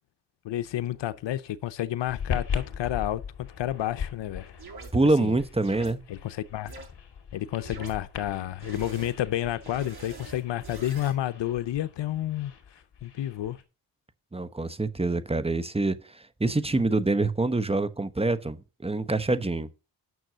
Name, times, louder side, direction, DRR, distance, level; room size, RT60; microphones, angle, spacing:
voice 1, 0.4-4.5 5.2-5.4 6.1-6.7 7.3-12.5 13.0-13.6, left 13 dB, 85° left, 0.7 m, -30 dB
sound 1, 2.1-13.6, left 7 dB, 70° left, 2.4 m, -39 dB
sound 2, 4.6-4.9 5.6-5.9 6.6-6.8 7.6-7.9 8.6-9.1 9.6-11.1, right 3 dB, 60° right, 7.5 m, -43 dB
voice 2, 4.9-6.0 14.3-16.0 16.4-18.6 18.8-19.7, right 2 dB, 15° right, 1.0 m, -25 dB
9.4 x 6.2 x 6.2 m
cardioid pair, 80°, 42 cm